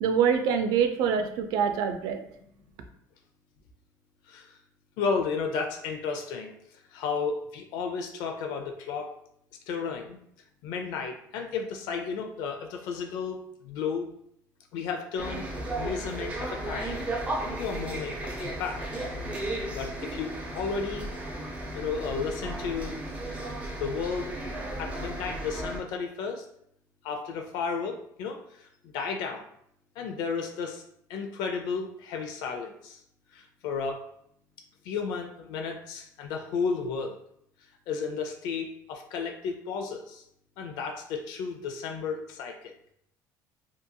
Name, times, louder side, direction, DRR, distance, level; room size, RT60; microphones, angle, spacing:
voice 1, 0.0-2.2, right 7 dB, 75° right, 7 dB, 0.4 m, -25 dB
voice 2, 5.0-6.5 6.9-9.1 9.7-10.2 10.6-13.4 13.6-14.1 14.7-15.4 15.8-17.0 17.4-18.8 19.7-21.1 21.7-23.0 23.8-24.3 24.8-26.4 27.0-28.4 28.9-29.4 30.0-30.8 31.1-33.0 33.3-34.0 34.9-37.2 37.9-40.2 40.6-42.7, left 5 dB, 80° left, 3 dB, 0.4 m, -33 dB
sound 1, 15.2-25.8, right 1 dB, 20° right, 0.5 m, -35 dB
2.8 x 2.5 x 2.2 m, 0.71 s
cardioid pair, 165°, 7 cm